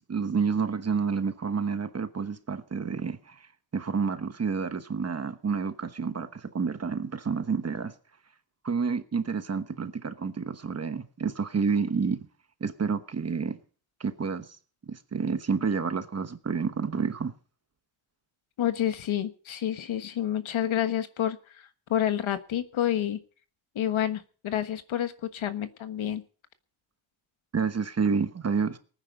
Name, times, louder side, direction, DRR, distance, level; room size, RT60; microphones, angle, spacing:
voice 1, 0.1-3.4 3.7-7.9 8.6-12.2 12.6-13.6 14.0-14.5 14.9-17.3 27.5-28.8, right 5 dB, 30° right, 1.1 m, -29 dB
voice 2, 18.6-23.2 23.7-26.2, left 11 dB, 75° left, 1.4 m, -29 dB
19.0 x 9.7 x 5.3 m
wide cardioid pair, 155°, 48 cm